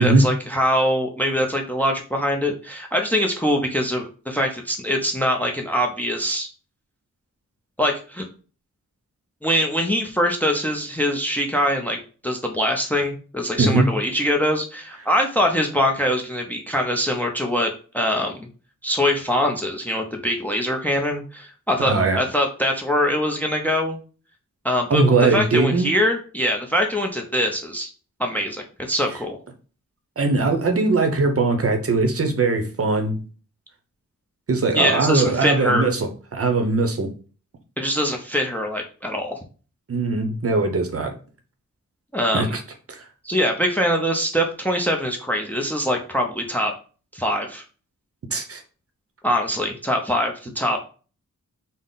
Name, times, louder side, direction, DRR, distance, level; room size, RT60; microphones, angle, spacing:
voice 1, 0.0-6.5 7.8-8.2 9.4-18.4 18.8-24.0 24.6-27.9 28.2-29.4 34.7-35.9 37.8-39.4 42.1-42.6 43.2-46.7 47.1-47.6 49.2-50.8, equal, 5° left, 3 dB, 0.5 m, -23 dB
voice 2, 21.9-22.2 24.9-25.9 30.2-33.2 34.5-37.1 39.9-41.1 42.3-42.6 42.9-43.0 48.3-48.6, right 3 dB, 45° right, 5 dB, 0.7 m, -20 dB
3.6 x 2.1 x 3.8 m, 0.38 s
wide cardioid pair, 85°, 32 cm